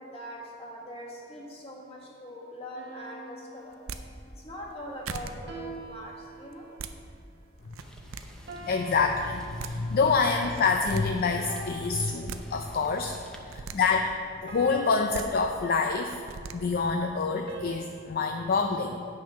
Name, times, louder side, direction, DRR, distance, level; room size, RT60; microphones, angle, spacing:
voice 1, 0.0-3.8 4.3-6.8, equal, 30° left, -3 dB, 1.7 m, -42 dB
sound 1, 2.7-4.4 5.5-7.0 8.5-10.1 11.5-13.0 14.5-16.2 17.5-18.5, right 2 dB, 55° right, 1.1 m, -45 dB
sound 2, 3.7-4.0 4.7-4.8 5.1-5.3 6.5-6.9 7.7-8.2 9.3-9.4 9.6-9.7 10.6-11.0 12.0-12.4 13.3-13.8 14.9-15.3 16.1-16.6, right 6 dB, 85° right, 0.5 m, -39 dB
Rain, 7.8-13.4, equal, 5° left, 0.7 m, -50 dB
voice 2, 8.6-13.2 13.5-14.1 14.4-16.2 16.5-19.1, left 4 dB, 45° left, 4 dB, 0.4 m, -26 dB
8.7 x 6.4 x 5.6 m, 2.4 s
head